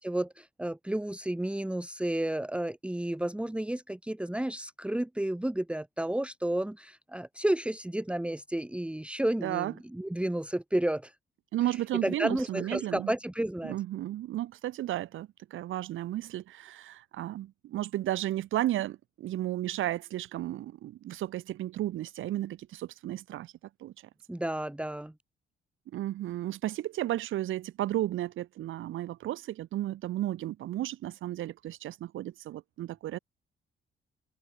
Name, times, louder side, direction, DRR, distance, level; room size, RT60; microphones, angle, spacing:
voice 1, 0.0-11.1 12.0-13.8 24.3-25.1, right 1 dB, 5° right, 1.8 m, -31 dB
voice 2, 9.4-9.7 11.5-13.1 13.6-23.5 23.8-23.9 25.9-33.2, right 14 dB, 80° right, 4.3 m, -33 dB
cardioid pair, 90°, 20 cm